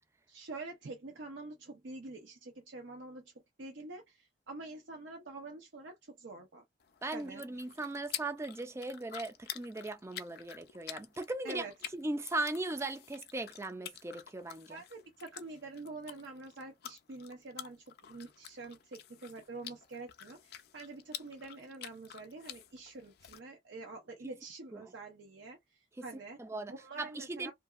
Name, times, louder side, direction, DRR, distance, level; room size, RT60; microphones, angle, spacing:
voice 1, 0.3-3.3 3.6-6.6 7.1-7.4 11.4-11.7 14.7-26.4 26.7-27.5, right 3 dB, 65° right, 0.6 m, -46 dB
sound 1, 6.8-23.4, left 11 dB, 55° left, 0.4 m, -49 dB
voice 2, 7.0-11.7 11.9-14.8 24.2-24.3 24.7-24.9 26.0-26.1 26.4-26.7 27.0-27.5, right 2 dB, 15° right, 0.4 m, -38 dB
2.7 x 2.6 x 2.4 m
head